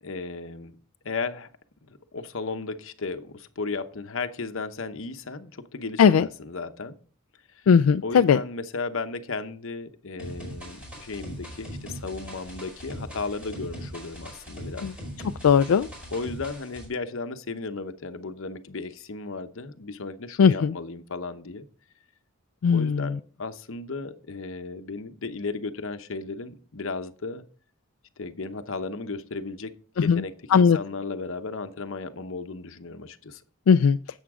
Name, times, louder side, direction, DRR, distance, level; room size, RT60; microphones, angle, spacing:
voice 1, 0.0-0.7 1.0-1.5 1.8-7.0 7.5-7.6 8.0-14.9 16.1-21.6 22.7-27.4 28.2-29.7 30.0-33.4, left 3 dB, 65° left, 0.9 m, -35 dB
voice 2, 7.7-8.4 14.8-14.9 15.4-15.9 20.4-20.7 22.6-23.1 30.1-30.2 30.5-30.8 33.7-34.0, left 6 dB, 85° left, 0.4 m, -18 dB
sound 1, 10.2-16.9, equal, 5° right, 5.1 m, -40 dB
11.0 x 8.1 x 3.7 m
head